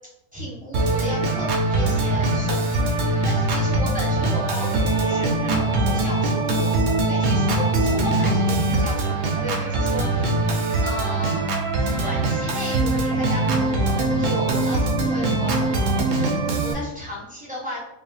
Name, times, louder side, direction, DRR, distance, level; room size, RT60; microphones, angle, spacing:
voice 1, 0.3-10.4 10.8-11.5 12.0-15.5 16.1-17.8, left 1 dB, 5° right, -7 dB, 1.0 m, -35 dB
Organ, 0.7-16.7, right 2 dB, 70° right, 0.9 m, -22 dB
3.6 x 2.1 x 3.9 m, 0.95 s
omnidirectional pair, 1.4 m